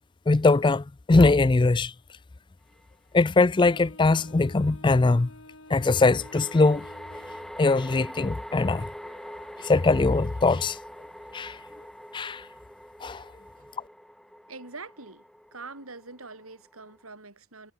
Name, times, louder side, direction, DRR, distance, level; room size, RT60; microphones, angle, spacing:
voice 1, 0.3-1.9 3.1-5.3 5.7-6.9 7.6-8.9 9.6-10.8 11.3-11.6 12.1-12.5 13.0-13.3, left 3 dB, 20° left, 0.4 m, -21 dB
sound 1, 2.7-2.8 5.7-17.1, equal, ahead, 4.4 m, -44 dB
Wind instrument woodwind instrument, 3.5-7.6, left 1 dB, 65° left, 7.7 m, -50 dB
voice 2, 14.5-15.2 15.5-17.7, right 3 dB, 90° right, 5.9 m, -43 dB
head